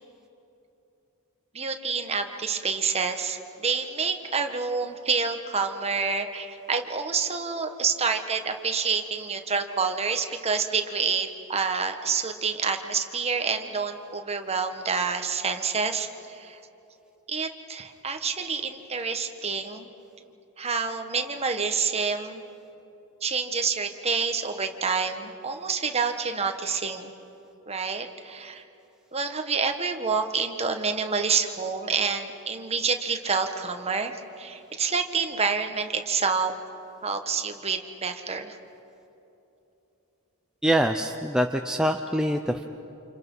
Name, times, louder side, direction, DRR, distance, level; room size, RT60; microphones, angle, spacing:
voice 1, 1.5-16.6 17.3-19.9 20.6-22.4 23.2-27.1 27.7-28.6 29.1-36.5 37.0-38.5, right 5 dB, 30° right, 6 dB, 1.4 m, -28 dB
voice 2, 40.6-42.6, equal, 5° right, 4 dB, 0.6 m, -24 dB
29.0 x 28.0 x 5.6 m, 3.0 s
head